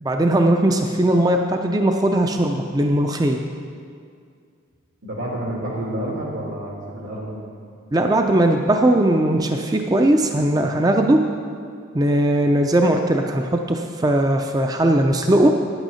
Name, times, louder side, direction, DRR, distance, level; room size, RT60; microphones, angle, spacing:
voice 1, 0.0-3.4 7.9-11.2 11.9-15.5, right 1 dB, 20° right, 3 dB, 0.4 m, -19 dB
voice 2, 5.0-7.3, right 1 dB, 90° right, -3 dB, 2.8 m, -29 dB
9.9 x 8.9 x 5.6 m, 2.2 s
head